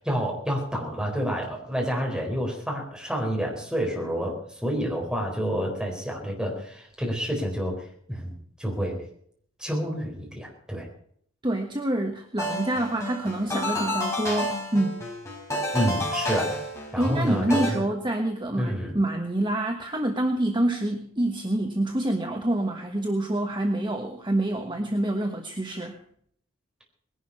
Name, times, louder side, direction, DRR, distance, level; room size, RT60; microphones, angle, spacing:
voice 1, 0.0-9.0 9.6-10.9 15.7-16.5 16.9-17.8 18.6-19.0, equal, 5° right, -1 dB, 4.2 m, -29 dB
voice 2, 11.4-15.0 17.0-25.9, right 1 dB, 20° right, 3 dB, 1.3 m, -27 dB
sound 1, 12.4-17.7, left 1 dB, 15° left, 5.3 m, -30 dB
20.5 x 11.5 x 5.6 m, 0.65 s
head